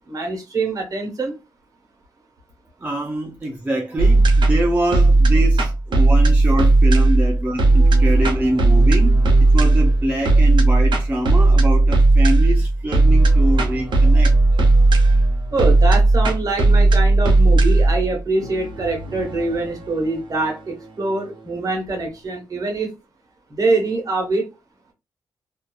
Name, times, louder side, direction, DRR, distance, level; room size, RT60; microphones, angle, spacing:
voice 1, 0.1-1.3 15.5-22.9 23.5-24.5, right 3 dB, 45° right, 1.1 m, -24 dB
voice 2, 2.8-14.3, right 1 dB, 20° right, 0.5 m, -25 dB
sound 1, 4.0-21.1, right 2 dB, 65° right, 0.8 m, -16 dB
2.7 x 2.4 x 2.2 m
cardioid pair, 110°, 9 cm